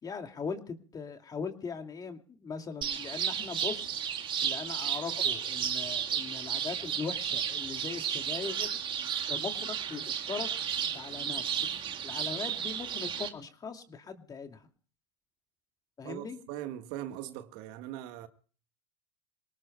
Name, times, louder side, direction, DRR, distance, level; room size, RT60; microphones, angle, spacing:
voice 1, 0.0-3.9 4.4-8.7 9.3-10.5 10.8-11.4 12.0-14.7 16.0-16.4, left 5 dB, 25° left, 2.4 m, -40 dB
sound 1, 2.8-13.3, right 8 dB, 35° right, 2.2 m, -33 dB
voice 2, 16.0-18.3, right 13 dB, 65° right, 1.7 m, -40 dB
27.5 x 18.5 x 2.3 m
supercardioid pair, 100°, 14 cm